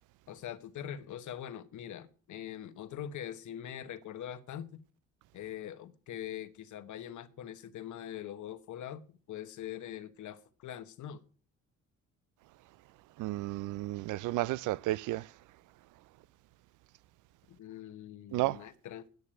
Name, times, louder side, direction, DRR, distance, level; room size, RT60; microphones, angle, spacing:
voice 1, 0.3-4.8 5.3-11.2 17.6-19.1, left 10 dB, 75° left, 1.2 m, -43 dB
voice 2, 13.2-15.4 18.3-18.7, right 17 dB, 85° right, 0.5 m, -33 dB
9.4 x 6.6 x 8.9 m
cardioid pair, 90°, 30 cm